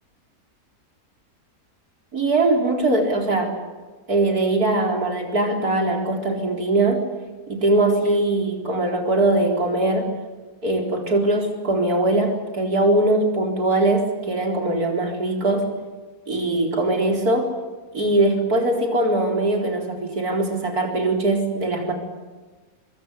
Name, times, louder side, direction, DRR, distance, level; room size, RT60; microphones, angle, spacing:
voice 1, 2.1-3.5 4.1-7.0 7.5-10.1 10.6-15.7 16.3-17.5 17.9-21.9, right 2 dB, 85° right, 2 dB, 4.7 m, -21 dB
24.0 x 23.5 x 8.3 m, 1.3 s
omnidirectional pair, 1.6 m